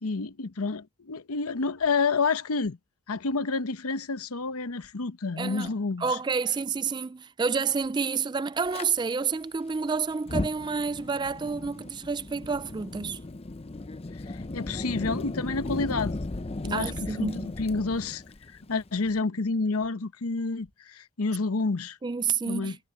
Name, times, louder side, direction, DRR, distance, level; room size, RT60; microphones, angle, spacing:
voice 1, 0.0-2.8 3.1-6.2 14.1-16.2 16.6-22.0 22.5-22.8, left 4 dB, 85° left, 0.9 m, -29 dB
sound 1, 1.8-1.9 2.6-2.8 4.8-4.9 5.6-5.7 7.8-7.9 8.6-8.8 10.8-10.9 11.6-11.8 13.8-13.9 14.6-14.8 16.8-16.9 17.6-17.7 19.8-19.9 20.6-20.7, equal, 50° right, 7.7 m, -64 dB
voice 2, 5.4-5.7 6.0-13.2 16.7-17.5 22.0-22.8, right 5 dB, 20° right, 0.3 m, -29 dB
Fire, 8.7-8.9 10.1-19.2, left 2 dB, 25° left, 0.5 m, -36 dB
head